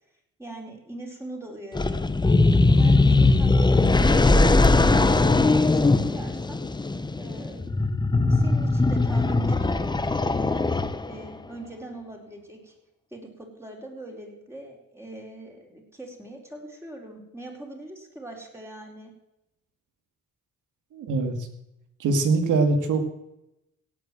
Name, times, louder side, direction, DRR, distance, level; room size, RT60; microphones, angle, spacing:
voice 1, 0.4-2.1 2.8-6.6 7.1-7.7 8.3-12.7 13.1-19.1, right 2 dB, 10° right, 0 dB, 4.4 m, -41 dB
sound 1, 1.7-11.3, left 3 dB, 15° left, 1.0 m, -20 dB
voice 2, 20.9-21.5 22.0-23.0, right 3 dB, 80° right, 7 dB, 2.5 m, -23 dB
17.0 x 8.4 x 7.7 m, 0.87 s
cardioid pair, 90°, 30 cm